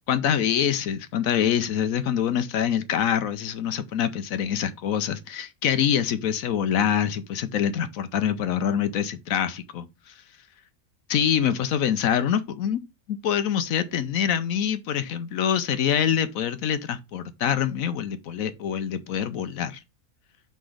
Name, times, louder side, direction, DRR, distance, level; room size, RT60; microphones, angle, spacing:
voice 1, 0.1-10.1 11.1-12.8 13.1-19.8, left 9 dB, 70° left, 1.1 m, -25 dB
5.8 x 4.0 x 4.9 m
omnidirectional pair, 1.6 m